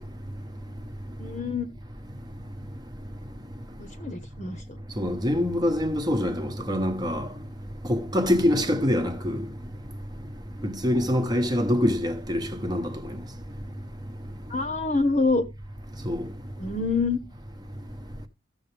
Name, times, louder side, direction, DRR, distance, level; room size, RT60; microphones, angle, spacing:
voice 1, 1.2-1.7 3.8-4.8 10.6-10.7 14.5-15.4 16.6-17.2, left 3 dB, 35° left, 1.1 m, -26 dB
voice 2, 5.0-7.3 7.9-9.4 10.6-12.9 16.0-16.2, left 1 dB, 20° right, 1.1 m, -25 dB
14.5 x 7.0 x 3.5 m
head